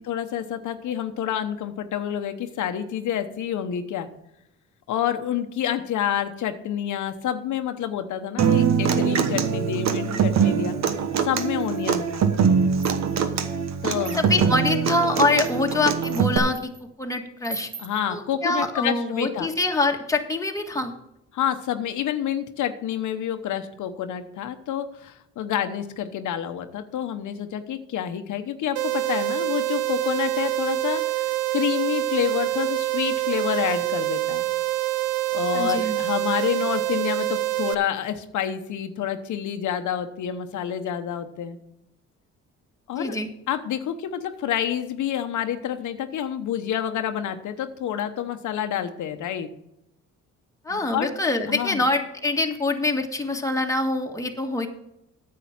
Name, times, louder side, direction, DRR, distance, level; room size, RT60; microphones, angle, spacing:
voice 1, 0.0-4.1 4.9-10.7 11.2-12.2 13.8-14.5 17.8-19.5 21.3-34.5 35.3-41.6 42.9-43.2 43.5-49.5 50.7-51.1 51.5-51.8, left 9 dB, 75° left, 7 dB, 1.0 m, -28 dB
Human voice / Acoustic guitar, 8.4-16.4, right 7 dB, 60° right, 1.3 m, -23 dB
sound 1, 11.4-12.1 12.6-13.3 13.9-14.5 15.1-16.8 17.4-18.0, right 3 dB, 25° right, 1.6 m, -41 dB
voice 2, 14.2-16.6 17.0-17.7 18.1-20.9 35.5-36.0 43.0-43.3 50.6-54.7, left 2 dB, 10° left, 3 dB, 1.6 m, -24 dB
sound 2, 28.8-37.8, right 17 dB, 75° right, 0.6 m, -26 dB
9.4 x 7.6 x 5.9 m, 0.83 s
cardioid pair, 90°, 30 cm